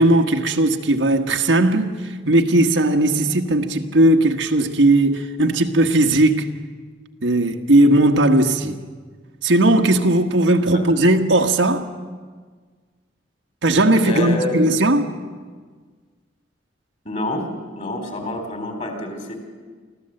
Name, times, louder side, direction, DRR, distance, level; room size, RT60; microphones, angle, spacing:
voice 1, 0.0-6.5 7.2-8.8 9.4-11.9 13.6-15.2, right 1 dB, 85° right, 1.4 m, -17 dB
voice 2, 14.0-14.6 17.0-17.5 17.7-19.3, left 1 dB, 40° left, 3.9 m, -27 dB
24.5 x 15.0 x 7.8 m
head